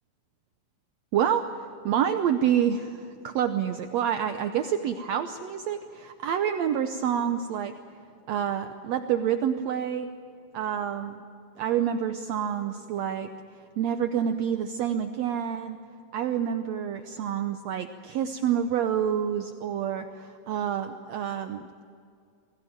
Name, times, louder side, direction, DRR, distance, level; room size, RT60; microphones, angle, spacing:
voice 1, 1.1-1.4 1.8-7.7 8.3-10.1 10.5-11.2 11.6-13.3 13.8-15.8 16.1-21.8, right 9 dB, 75° right, 7 dB, 1.6 m, -28 dB
24.5 x 16.0 x 9.1 m, 2.4 s
omnidirectional pair, 4.1 m